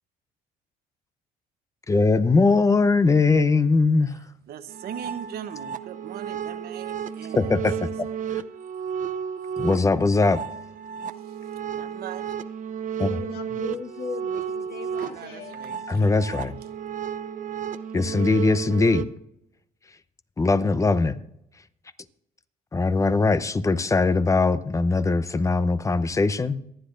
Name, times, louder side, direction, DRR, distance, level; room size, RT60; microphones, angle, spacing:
voice 1, 1.9-4.2 8.0-8.4 9.6-10.4 13.0-13.2 15.9-16.5 17.9-19.0 20.4-21.2 22.7-26.6, left 3 dB, 20° left, 14 dB, 0.6 m, -21 dB
voice 2, 4.1-7.9 11.1-12.4 15.0-16.5, right 9 dB, 65° right, 10 dB, 1.0 m, -40 dB
sound 1, 4.7-19.0, right 8 dB, 50° right, 0.6 m, -33 dB
voice 3, 13.0-15.6, left 7 dB, 65° left, 4 dB, 1.9 m, -38 dB
26.0 x 10.0 x 2.5 m, 0.80 s
cardioid pair, 110°, 17 cm